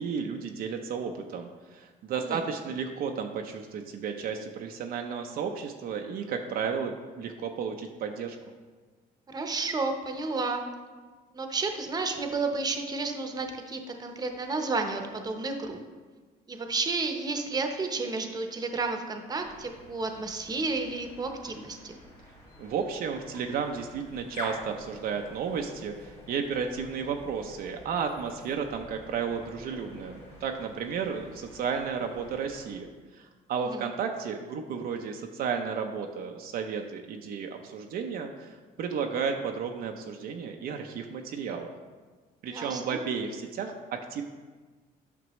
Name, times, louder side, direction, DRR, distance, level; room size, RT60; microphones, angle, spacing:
voice 1, 0.0-8.4 22.6-41.7 42.4-44.2, right 6 dB, 65° right, 3 dB, 0.6 m, -33 dB
voice 2, 9.3-10.6 11.3-15.8 16.5-22.0 33.6-33.9 42.5-43.0, right 3 dB, 25° right, 5 dB, 0.8 m, -32 dB
sound 1, 19.4-32.8, left 1 dB, 35° left, 2.2 m, -47 dB
9.3 x 5.9 x 3.1 m, 1.4 s
cardioid pair, 110°, 17 cm